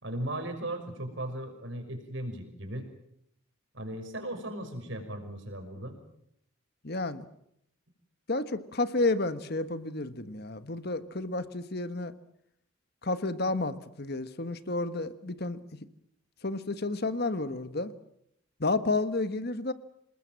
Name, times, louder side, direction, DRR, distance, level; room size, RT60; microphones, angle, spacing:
voice 1, 0.0-2.9 3.7-6.0, right 1 dB, 60° right, 6 dB, 5.9 m, -37 dB
voice 2, 6.8-7.2 8.3-12.1 13.0-15.6 16.4-17.9 18.6-19.7, left 2 dB, 50° left, 12 dB, 1.4 m, -31 dB
27.5 x 20.0 x 7.6 m, 0.74 s
head